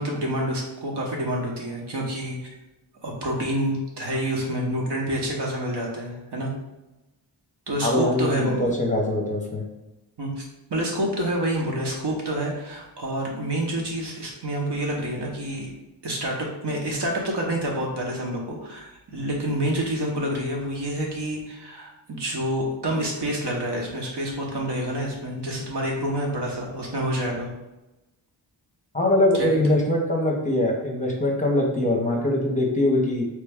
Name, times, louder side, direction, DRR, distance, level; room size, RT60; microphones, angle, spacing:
voice 1, 0.0-2.4 3.0-6.5 7.7-8.7 10.2-10.4 10.7-15.7 16.0-27.5 29.3-29.8, right 1 dB, 60° right, -2 dB, 0.9 m, -28 dB
voice 2, 7.8-9.6 28.9-33.2, left 1 dB, 15° left, -1 dB, 0.7 m, -22 dB
3.1 x 2.2 x 3.4 m, 0.99 s
cardioid pair, 50°, 46 cm